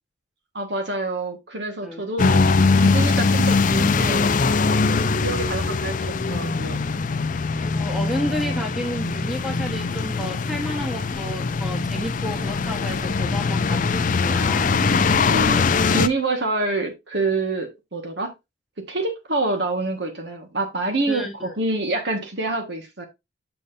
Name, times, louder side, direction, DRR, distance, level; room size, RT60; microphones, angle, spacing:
voice 1, 0.5-2.4 2.8-4.3 5.2-6.8 15.2-15.6 15.9-18.3 18.8-23.0, right 2 dB, 60° right, 5 dB, 1.6 m, -27 dB
sound 1, 2.2-16.1, left 4 dB, 40° left, 0.4 m, -21 dB
voice 2, 4.8-5.4 7.6-14.7 21.1-21.5, left 1 dB, ahead, 3 dB, 1.2 m, -31 dB
6.9 x 6.7 x 2.6 m, 0.22 s
head